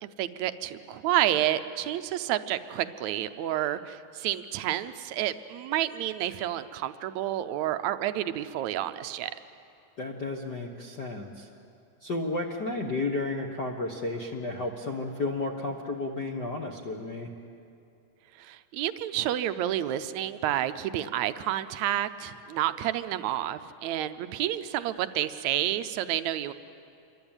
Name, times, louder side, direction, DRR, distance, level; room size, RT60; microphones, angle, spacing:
voice 1, 0.0-9.3 18.4-26.5, right 12 dB, 75° right, 11 dB, 1.7 m, -30 dB
voice 2, 10.0-11.5 12.0-17.3, left 2 dB, 70° left, 1 dB, 0.9 m, -32 dB
27.5 x 23.5 x 8.9 m, 2.6 s
omnidirectional pair, 4.1 m